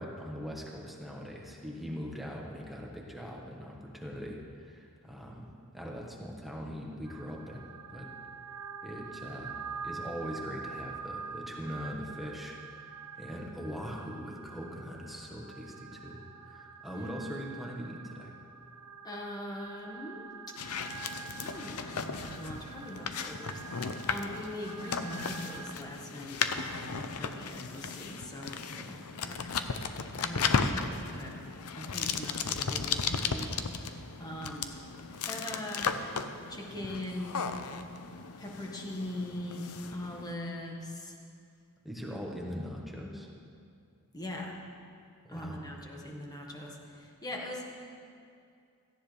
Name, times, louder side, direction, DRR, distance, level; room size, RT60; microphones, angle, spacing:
voice 1, 0.0-8.1 8.8-18.3 28.7-29.1 41.8-43.3 45.2-45.6, equal, ahead, -2 dB, 1.4 m, -41 dB
sound 1, 7.0-25.7, right 6 dB, 80° right, 1.1 m, -46 dB
voice 2, 19.0-20.3 21.4-28.6 29.2-29.5 30.2-31.5 31.8-33.6 34.2-34.7 35.1-36.0 36.5-37.5 38.4-41.2 44.1-44.6 45.3-47.6, left 1 dB, 15° left, -1 dB, 1.7 m, -41 dB
sound 2, 20.6-40.3, left 5 dB, 75° left, 0.7 m, -35 dB
17.0 x 14.5 x 3.4 m, 2.5 s
head